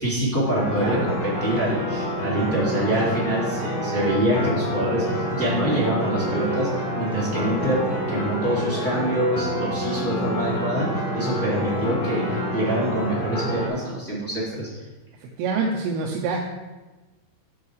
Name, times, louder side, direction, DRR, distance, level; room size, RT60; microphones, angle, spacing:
voice 1, 0.0-6.7 6.9-7.8 8.1-10.9 11.1-12.2 12.5-14.7, right 1 dB, 5° left, -9 dB, 1.6 m, -25 dB
sound 1, 0.5-13.7, equal, 55° left, 1.9 m, -27 dB
voice 2, 15.2-16.4, right 4 dB, 85° right, 0 dB, 3.3 m, -26 dB
10.0 x 5.7 x 4.8 m, 1.2 s
omnidirectional pair, 5.6 m